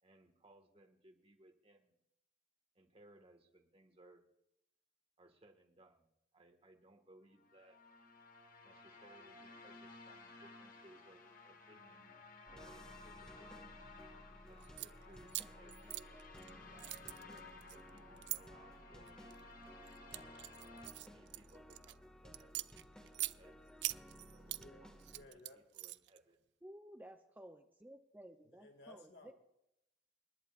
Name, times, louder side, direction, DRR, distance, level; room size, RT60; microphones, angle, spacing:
voice 1, 0.0-2.0 2.8-4.2 5.2-6.1 6.3-7.8 8.6-12.2 12.5-13.9 14.5-15.3 15.6-16.2 16.7-17.4 17.7-19.2 20.0-20.4 21.0-22.6 23.0-23.6 24.3-25.0 25.3-26.4, right 1 dB, 35° right, 5 dB, 1.8 m, -64 dB
sound 1, 7.4-20.9, left 3 dB, 50° left, 1.5 m, -57 dB
sound 2, 12.5-25.2, equal, 5° left, 1.9 m, -57 dB
sound 3, 14.6-14.9 15.3-16.5 16.8-18.4 19.1-19.4 19.9-21.9 22.3-23.4 23.8-24.6 25.0-26.2, right 18 dB, 70° right, 0.4 m, -43 dB
voice 2, 24.4-25.6 28.4-29.3, left 2 dB, 70° left, 4 dB, 2.3 m, -59 dB
voice 3, 26.6-29.3, right 1 dB, 10° right, 5 dB, 0.6 m, -55 dB
28.5 x 11.0 x 2.5 m, 0.81 s
head